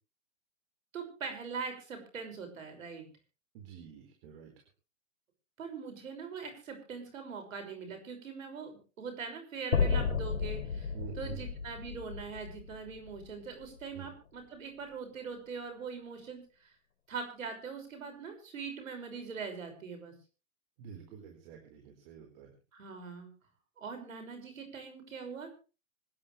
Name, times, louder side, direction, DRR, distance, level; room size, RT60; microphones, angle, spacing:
voice 1, 0.9-3.1 5.6-16.7 17.1-20.1 22.7-23.3 23.8-25.5, right 5 dB, 75° right, 5 dB, 6.1 m, -42 dB
voice 2, 3.5-4.5 10.9-11.4 13.9-14.1 20.8-22.5, right 8 dB, 45° right, 2 dB, 4.5 m, -47 dB
sound 1, 9.7-13.9, left 6 dB, 85° left, 1.6 m, -33 dB
25.5 x 10.5 x 3.3 m, 0.34 s
hypercardioid pair, 130°, 40 cm